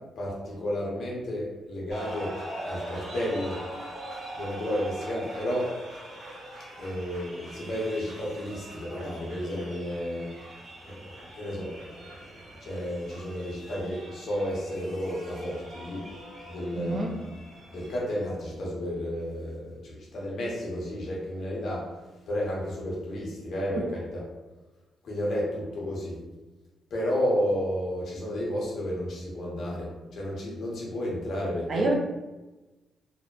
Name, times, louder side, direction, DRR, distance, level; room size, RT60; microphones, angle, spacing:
voice 1, 0.2-2.4 2.7-3.6 4.3-5.8 6.8-10.3 10.8-12.3 12.6-16.1 16.4-17.2 17.7-21.9 22.3-24.2 25.0-26.2 26.9-31.9, equal, 70° left, -4 dB, 0.8 m, -32 dB
sound 1, 1.9-18.0, right 1 dB, 65° right, 0.9 m, -43 dB
voice 2, 16.8-17.2 31.7-31.9, right 2 dB, 50° right, 1 dB, 0.4 m, -27 dB
2.7 x 2.0 x 2.3 m, 1.1 s
cardioid pair, 95°, 0 cm